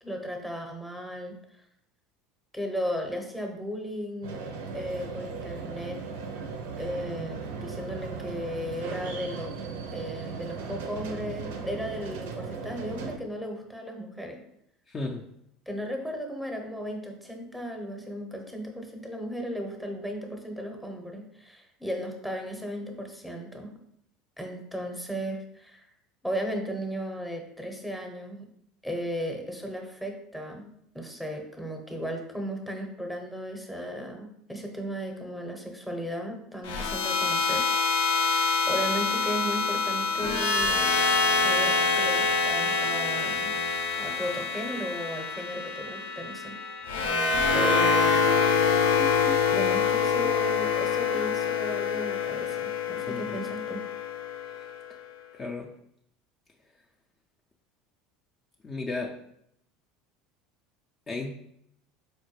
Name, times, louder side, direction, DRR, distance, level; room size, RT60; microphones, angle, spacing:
voice 1, 0.0-1.3 2.5-4.4 4.7-6.0 6.8-9.6 9.9-14.4 15.7-23.8 24.4-25.9 26.2-28.4 28.8-37.7 38.1-40.9 41.3-43.5 44.0-47.0 47.5-48.2 49.5-53.8, equal, ahead, 3 dB, 0.7 m, -35 dB
sound 1, 4.2-13.2, right 5 dB, 80° right, 0.4 m, -37 dB
voice 2, 14.9-15.2 53.1-53.4 54.5-54.6 55.3-55.7 58.6-59.1 61.1-61.3, left 3 dB, 30° left, 0 dB, 0.4 m, -34 dB
sound 2, 36.6-54.8, left 5 dB, 80° left, 0.5 m, -26 dB
4.3 x 2.1 x 3.1 m, 0.75 s
hypercardioid pair, 90°, 0 cm